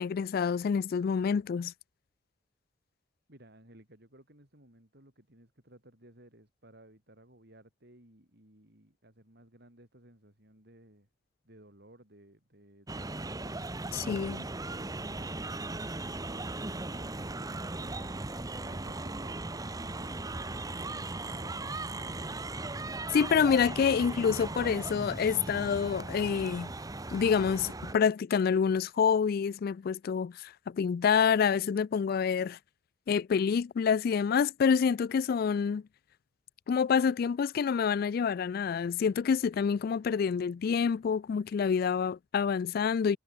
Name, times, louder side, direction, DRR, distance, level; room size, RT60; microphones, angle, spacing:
voice 1, 0.0-1.7 13.9-14.4 23.1-26.7 27.1-32.6 33.1-35.8 36.7-43.2, left 6 dB, 50° left, 0.3 m, -27 dB
voice 2, 3.3-11.1 11.4-13.7 14.7-21.8, right 1 dB, 55° right, 6.3 m, -57 dB
sound 1, 12.9-27.9, right 2 dB, 20° right, 1.0 m, -38 dB
head